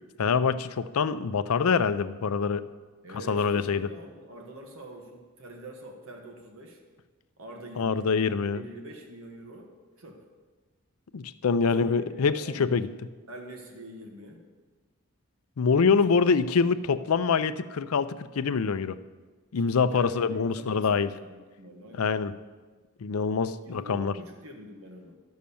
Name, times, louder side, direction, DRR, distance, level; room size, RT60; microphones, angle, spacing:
voice 1, 0.2-2.7 3.3-3.9 7.8-8.6 11.1-12.9 15.6-19.0 19.5-21.1 22.0-22.3 23.0-24.1, left 5 dB, 90° left, 13 dB, 0.5 m, -25 dB
voice 2, 3.0-6.8 7.4-8.1 8.5-10.2 11.6-12.8 13.3-14.5 19.9-22.1 23.6-25.2, right 1 dB, 70° right, 1 dB, 1.5 m, -45 dB
11.5 x 6.4 x 7.0 m, 1.3 s
head